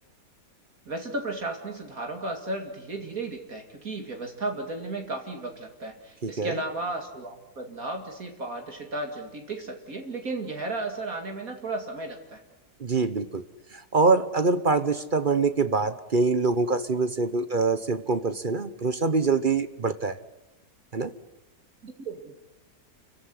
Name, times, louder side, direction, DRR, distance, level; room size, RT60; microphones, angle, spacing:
voice 1, 0.9-12.4 21.8-22.3, right 2 dB, 60° right, 3 dB, 2.8 m, -34 dB
voice 2, 6.2-6.6 12.8-13.4 13.7-20.2 20.9-21.1, right 4 dB, 40° right, 12 dB, 1.0 m, -24 dB
29.0 x 16.0 x 9.7 m, 0.95 s
omnidirectional pair, 1.7 m